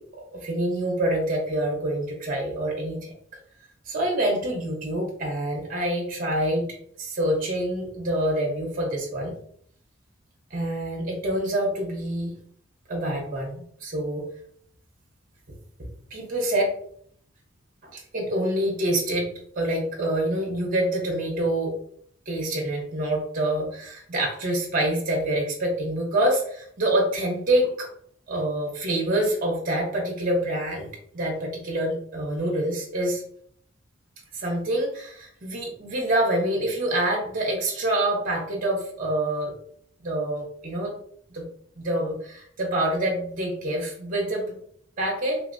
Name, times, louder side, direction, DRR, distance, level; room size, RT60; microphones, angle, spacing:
voice 1, 0.0-3.1 3.8-6.7 7.0-9.3 10.5-12.3 12.9-14.2 16.1-16.7 17.9-19.3 19.6-21.7 22.3-27.9 28.3-30.9 31.1-33.2 34.3-39.5 40.0-40.9 41.3-41.5 41.8-44.6 45.0-45.4, right 1 dB, 45° right, 0 dB, 0.9 m, -26 dB
3.4 x 2.8 x 2.6 m, 0.63 s
head